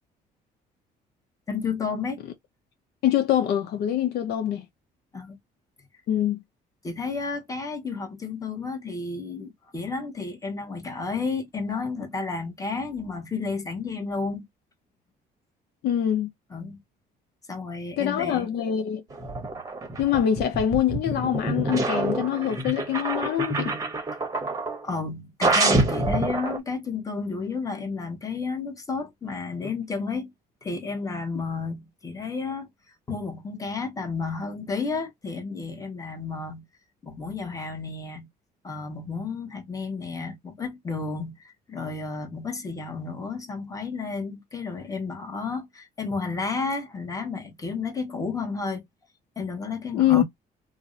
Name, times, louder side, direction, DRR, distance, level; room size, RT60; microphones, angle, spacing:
voice 1, 1.5-2.2 5.1-5.4 6.8-14.4 16.5-16.8 17.5-18.5 24.8-30.3 30.6-32.7 33.1-36.6 37.0-38.3 38.6-48.8 49.4-50.2, left 4 dB, 20° left, 1.0 m, -32 dB
voice 2, 3.0-4.6 6.1-6.4 15.8-16.3 18.0-19.0 20.0-23.8 49.9-50.2, left 10 dB, 75° left, 0.6 m, -24 dB
sound 1, 19.1-24.8 25.4-26.6, right 2 dB, 20° right, 0.8 m, -26 dB
2.6 x 2.1 x 3.8 m
cardioid pair, 110°, 17 cm